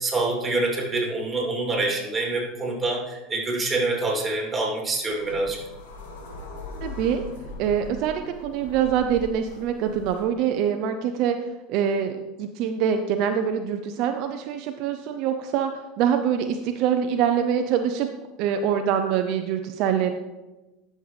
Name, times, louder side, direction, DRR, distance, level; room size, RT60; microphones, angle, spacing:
voice 1, 0.0-5.6, right 2 dB, 15° right, -1 dB, 2.9 m, -26 dB
sound 1, 5.0-10.2, left 3 dB, 85° left, 1.8 m, -40 dB
voice 2, 6.8-7.2 7.6-11.4 11.7-18.1 18.4-20.1, right 8 dB, 60° right, 6 dB, 0.6 m, -24 dB
11.5 x 6.5 x 3.3 m, 1.1 s
supercardioid pair, 105°, 0 cm